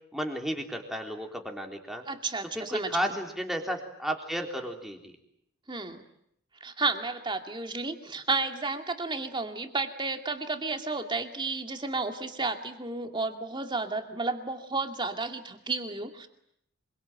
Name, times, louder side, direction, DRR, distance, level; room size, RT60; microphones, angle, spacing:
voice 1, 0.1-2.0 2.5-5.1, equal, ahead, 2 dB, 3.5 m, -33 dB
voice 2, 2.1-3.2 5.7-6.0 6.6-16.3, right 3 dB, 20° right, 5 dB, 2.4 m, -32 dB
26.0 x 24.0 x 9.0 m, 0.73 s
head